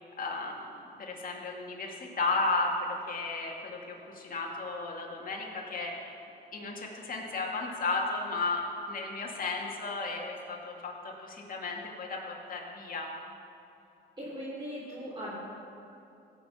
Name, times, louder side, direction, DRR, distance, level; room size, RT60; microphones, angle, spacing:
voice 1, 0.2-0.7 1.0-5.9 6.5-13.1, left 3 dB, 45° left, -1 dB, 2.4 m, -34 dB
voice 2, 14.2-15.3, equal, 25° right, -8 dB, 3.7 m, -39 dB
16.5 x 6.9 x 6.7 m, 2.7 s
cardioid pair, 90°, 20 cm